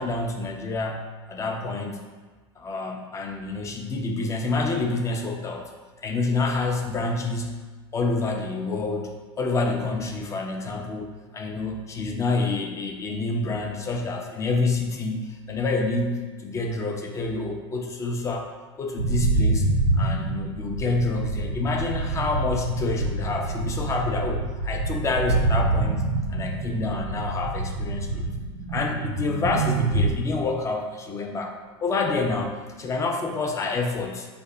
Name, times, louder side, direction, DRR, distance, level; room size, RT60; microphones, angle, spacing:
voice 1, 0.0-2.0 2.6-5.7 6.0-7.6 7.9-11.1 11.3-18.5 18.8-19.7 20.0-26.0 26.3-28.3 28.7-34.3, left 3 dB, 20° left, 2 dB, 0.4 m, -28 dB
sound 1, 19.0-30.1, right 2 dB, 90° right, 0.4 m, -26 dB
2.1 x 2.0 x 3.7 m, 1.4 s
hypercardioid pair, 90°, 15 cm